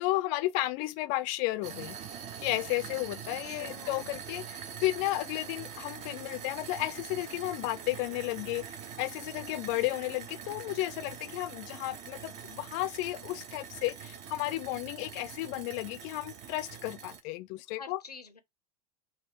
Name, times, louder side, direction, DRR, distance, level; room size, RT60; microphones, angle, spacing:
voice 1, 0.0-2.0 2.4-8.7 9.0-18.0, left 17 dB, 40° left, 0.4 m, -33 dB
sound 1, 1.6-17.2, right 7 dB, 35° right, 0.6 m, -44 dB
voice 2, 3.4-4.1 17.7-18.4, left 5 dB, 90° left, 0.5 m, -47 dB
4.1 x 2.3 x 2.7 m
figure-of-eight pair, 90°, 20 cm